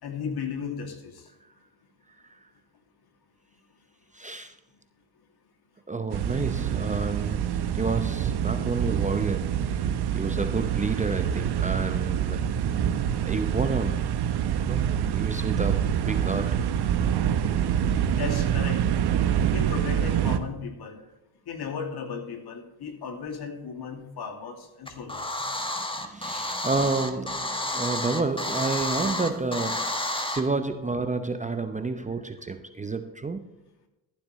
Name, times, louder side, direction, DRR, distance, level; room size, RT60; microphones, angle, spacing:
voice 1, 0.0-1.1 18.2-18.8 19.5-21.0 21.5-25.3, left 6 dB, 55° left, 4 dB, 2.6 m, -35 dB
voice 2, 4.1-4.6 5.9-12.5 13.2-14.2 14.6-16.6 25.8-33.4, right 3 dB, 15° right, 8 dB, 0.8 m, -30 dB
sound 1, 6.1-20.4, right 9 dB, 55° right, 1.2 m, -26 dB
sound 2, 24.9-30.4, left 1 dB, 10° left, 1.7 m, -30 dB
13.0 x 11.5 x 3.2 m, 0.98 s
supercardioid pair, 70°, 46 cm